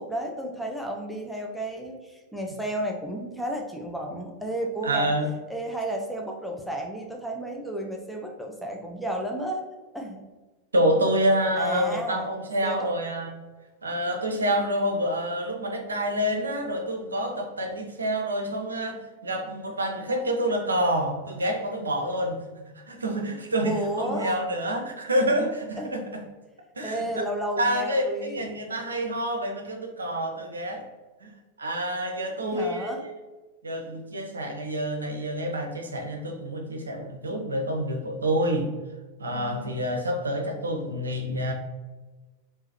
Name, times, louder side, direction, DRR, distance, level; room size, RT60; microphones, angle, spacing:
voice 1, 0.0-5.1 5.5-9.6 9.9-10.3 11.6-12.3 12.6-12.9 19.5-19.7 23.7-24.4 25.8-26.1 26.8-28.4 32.4-33.1 39.3-39.9, right 1 dB, ahead, 0 dB, 0.5 m, -32 dB
voice 2, 4.8-5.3 10.7-13.5 13.8-22.4 22.9-26.2 26.8-27.0 27.6-30.8 31.2-31.3 31.6-33.1 33.6-38.7 39.2-41.5, equal, 75° right, 3 dB, 0.6 m, -27 dB
3.7 x 2.9 x 2.9 m, 1.2 s
figure-of-eight pair, 90°, 0 cm